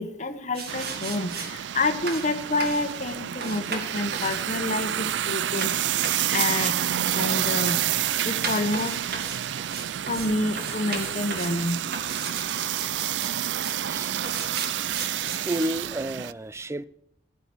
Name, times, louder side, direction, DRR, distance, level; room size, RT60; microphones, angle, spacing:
voice 1, 0.0-5.7 6.3-6.7 7.1-7.8 8.2-9.2 10.1-11.8, left 2 dB, 40° left, 1.2 m, -28 dB
sound 1, 0.5-1.5 2.1-2.3 2.6-2.9 3.4-10.3 10.6-11.6 11.9-13.8 14.2-15.7, right 4 dB, 60° right, 2.1 m, -36 dB
sound 2, 0.7-16.3, right 11 dB, 85° right, 0.4 m, -29 dB
voice 2, 13.8-14.3 15.1-16.8, right 1 dB, 15° right, 0.4 m, -31 dB
13.0 x 9.9 x 6.2 m
head